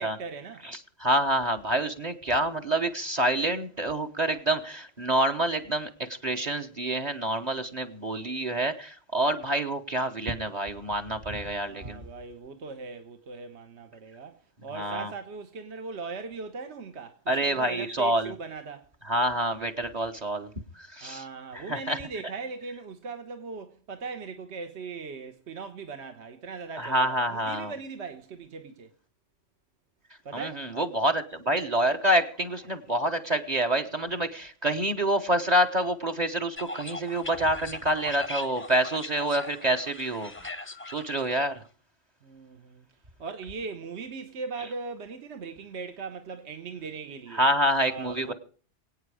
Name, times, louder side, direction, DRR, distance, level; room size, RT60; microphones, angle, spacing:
voice 1, 0.0-0.7 11.7-18.9 21.0-28.9 30.2-30.6 42.2-42.9 43.2-47.4 47.8-48.3, right 4 dB, 60° right, 1.3 m, -39 dB
voice 2, 0.6-12.0 14.7-15.1 17.3-18.3 19.1-20.5 20.8-21.2 21.5-22.0 26.8-27.7 30.3-41.6 47.4-48.3, right 1 dB, 35° right, 1.1 m, -27 dB
sound 1, 36.6-41.5, left 2 dB, 15° left, 0.6 m, -40 dB
24.0 x 8.9 x 4.9 m
omnidirectional pair, 1.3 m